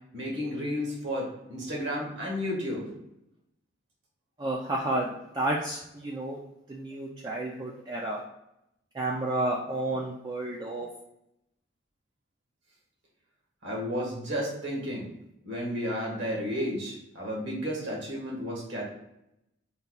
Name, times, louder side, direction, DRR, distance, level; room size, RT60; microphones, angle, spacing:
voice 1, 0.1-2.9 13.6-15.1 15.4-18.8, equal, 70° right, -2 dB, 1.4 m, -32 dB
voice 2, 4.4-5.1 5.3-6.4 6.7-8.2 8.9-10.9, right 2 dB, 20° right, -2 dB, 0.3 m, -31 dB
4.1 x 2.3 x 3.9 m, 0.84 s
head